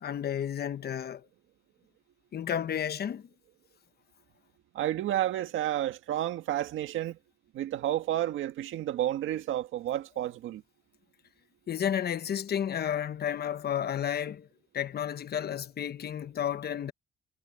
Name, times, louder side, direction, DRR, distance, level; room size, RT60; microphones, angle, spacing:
voice 1, 0.0-1.2 2.3-3.3 11.7-14.5 14.7-16.9, left 9 dB, 55° left, 1.1 m, -32 dB
voice 2, 4.7-7.2 7.5-10.6, right 12 dB, 85° right, 1.8 m, -31 dB
cardioid pair, 90°, 20 cm